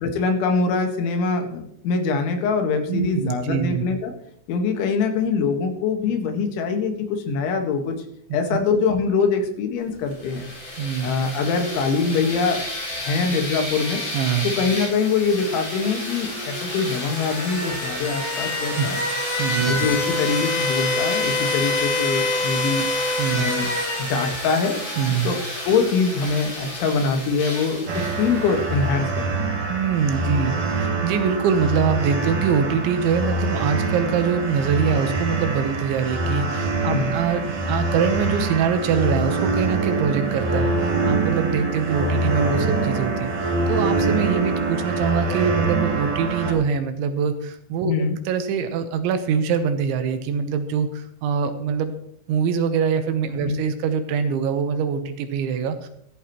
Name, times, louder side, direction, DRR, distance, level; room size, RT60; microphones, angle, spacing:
voice 1, 0.0-4.1 4.5-8.0 8.3-10.5 11.0-12.6 13.0-14.0 14.6-19.0 19.6-22.9 23.3-23.7 24.0-24.8 25.2-25.4 25.7-29.6 36.9-37.1 47.9-48.1 53.4-53.6, left 4 dB, 75° left, 4 dB, 3.9 m, -23 dB
voice 2, 2.9-3.8 8.5-8.6 10.8-11.1 14.1-14.5 18.8-18.9 19.4-19.9 23.2-23.5 25.0-25.3 29.7-51.9 52.3-55.9, right 7 dB, 75° right, 8 dB, 3.2 m, -24 dB
sound 1, 10.1-28.8, left 2 dB, 35° left, 5.9 m, -28 dB
sound 2, 27.9-46.5, right 3 dB, 50° right, 3.3 m, -24 dB
15.0 x 13.0 x 3.0 m, 0.71 s
omnidirectional pair, 5.6 m